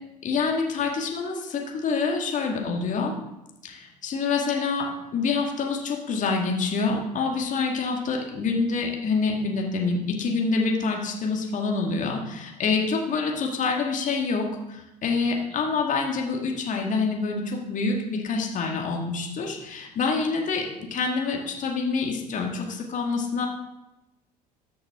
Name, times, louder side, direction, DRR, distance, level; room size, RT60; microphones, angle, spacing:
voice 1, 0.2-3.1 3.6-23.5, left 4 dB, 35° left, 1 dB, 2.0 m, -26 dB
13.5 x 6.3 x 3.7 m, 0.92 s
figure-of-eight pair, 65°, 21 cm